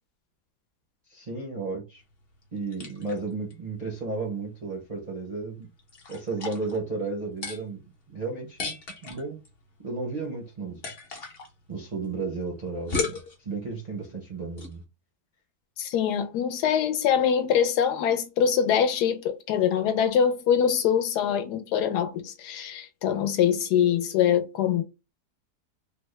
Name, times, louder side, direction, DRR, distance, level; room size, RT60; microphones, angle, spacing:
voice 1, 1.1-2.0 2.5-5.7 6.1-7.8 8.1-8.7 9.0-9.4 9.8-10.8 11.7-14.8, right 3 dB, 45° right, 0.5 m, -33 dB
sound 1, 2.0-14.8, left 4 dB, 45° left, 0.9 m, -39 dB
voice 2, 15.8-24.8, left 8 dB, 80° left, 1.2 m, -24 dB
3.4 x 2.2 x 3.2 m
omnidirectional pair, 1.7 m